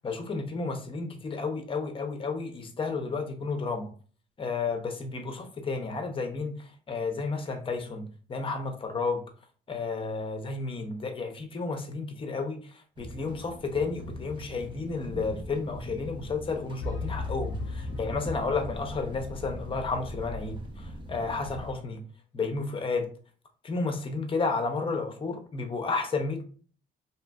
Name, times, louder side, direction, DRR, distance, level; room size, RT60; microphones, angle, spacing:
voice 1, 0.0-3.9 4.4-9.2 9.7-22.0 22.3-23.1 23.6-26.4, left 4 dB, 25° left, 5 dB, 0.5 m, -32 dB
sound 1, 13.0-21.7, equal, 25° right, 0.5 m, -41 dB
sound 2, 16.8-18.9, left 4 dB, 80° left, 0.4 m, -36 dB
2.7 x 2.4 x 2.2 m, 0.42 s
cardioid pair, 90°, 20 cm